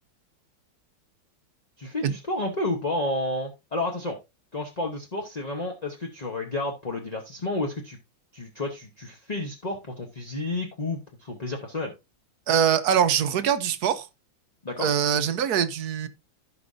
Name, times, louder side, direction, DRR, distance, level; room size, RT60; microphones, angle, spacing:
voice 1, 1.8-4.2 4.5-8.0 8.3-11.9 14.6-14.9, left 2 dB, 30° left, 0.7 m, -31 dB
voice 2, 12.5-14.1 14.8-16.1, right 8 dB, 65° right, 1.1 m, -23 dB
15.5 x 5.3 x 2.6 m
omnidirectional pair, 2.1 m